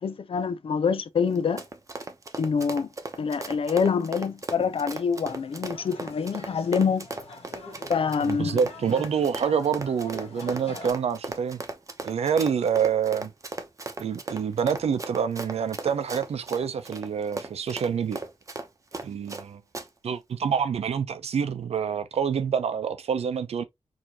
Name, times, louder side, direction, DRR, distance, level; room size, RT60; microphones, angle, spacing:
voice 1, 0.0-1.6 2.4-2.9 3.2-7.1 7.9-8.6, left 6 dB, 60° left, 0.5 m, -26 dB
Run, 1.3-19.4 19.7-19.9, right 3 dB, 30° right, 0.8 m, -37 dB
sound 1, 5.3-10.9, left 2 dB, 75° left, 1.4 m, -44 dB
voice 2, 8.2-11.6 12.0-13.3 14.0-18.2 19.0-19.6 20.0-23.6, right 7 dB, 80° right, 0.7 m, -27 dB
4.7 x 2.8 x 2.9 m
cardioid pair, 80°, 10 cm